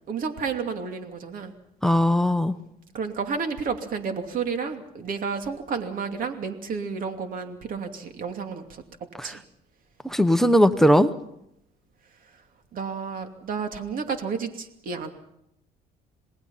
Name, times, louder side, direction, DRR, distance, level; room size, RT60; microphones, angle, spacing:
voice 1, 0.1-1.5 2.9-8.8 9.2-9.4 12.7-15.1, right 5 dB, 55° right, 6 dB, 2.7 m, -31 dB
voice 2, 1.8-2.6 10.0-11.1, equal, ahead, 13 dB, 1.0 m, -19 dB
28.0 x 19.5 x 5.7 m, 0.80 s
cardioid pair, 110°, 17 cm